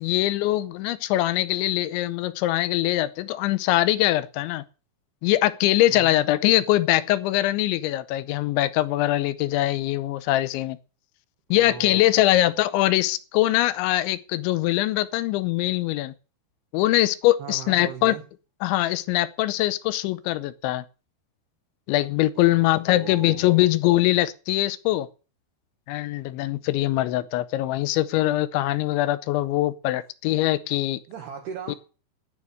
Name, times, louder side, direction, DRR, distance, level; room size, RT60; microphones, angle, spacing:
voice 1, 0.0-4.6 5.2-10.8 11.5-16.1 16.7-18.1 18.6-20.8 21.9-25.1 25.9-31.0 31.7-31.8, left 16 dB, 80° left, 3.0 m, -22 dB
voice 2, 5.9-6.2 11.5-12.5 17.4-18.2 22.4-23.7 31.1-31.8, right 7 dB, 65° right, 3.1 m, -39 dB
10.0 x 9.8 x 8.4 m
omnidirectional pair, 5.6 m